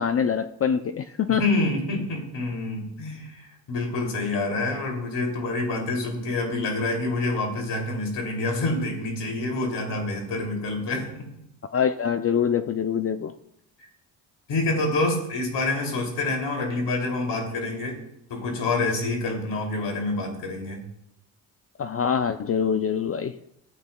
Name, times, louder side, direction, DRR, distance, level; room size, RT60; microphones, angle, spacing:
voice 1, 0.0-1.4 11.7-13.3 21.8-23.4, left 7 dB, 35° left, 11 dB, 0.4 m, -24 dB
voice 2, 1.3-11.3 14.5-18.0 18.3-20.8, left 2 dB, 70° left, 2 dB, 2.8 m, -27 dB
13.5 x 8.3 x 2.3 m, 0.79 s
cardioid pair, 75°, 44 cm